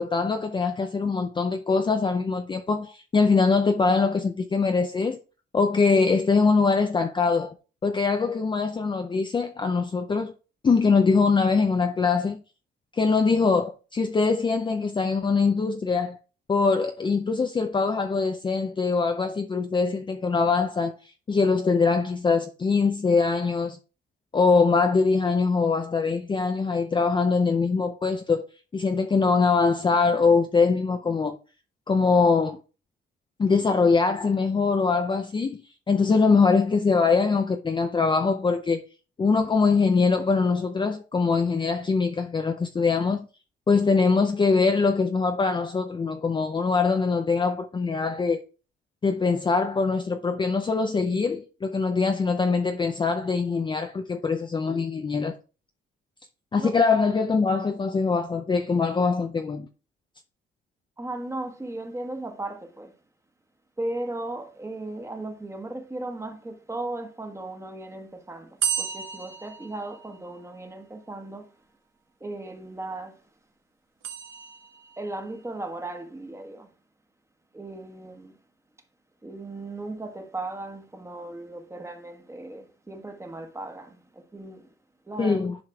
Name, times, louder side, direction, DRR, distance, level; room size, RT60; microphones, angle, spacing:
voice 1, 0.0-5.2 5.5-7.5 7.8-10.3 10.6-12.4 12.9-16.2 16.5-21.0 21.3-23.8 24.3-28.4 28.7-31.4 31.9-32.6 33.4-35.6 35.9-38.8 39.2-43.3 43.7-48.4 49.0-55.3 56.5-59.7 85.2-85.6, left 4 dB, 25° left, 0.5 m, -23 dB
voice 2, 61.0-62.9 63.8-71.6 72.2-73.2 75.0-76.7 77.5-78.3 79.2-84.7 85.1-85.4, right 2 dB, 15° right, 1.2 m, -36 dB
sound 1, 68.6-70.6 74.0-75.1, right 8 dB, 80° right, 1.1 m, -32 dB
10.5 x 4.9 x 2.3 m
cardioid pair, 90°, 20 cm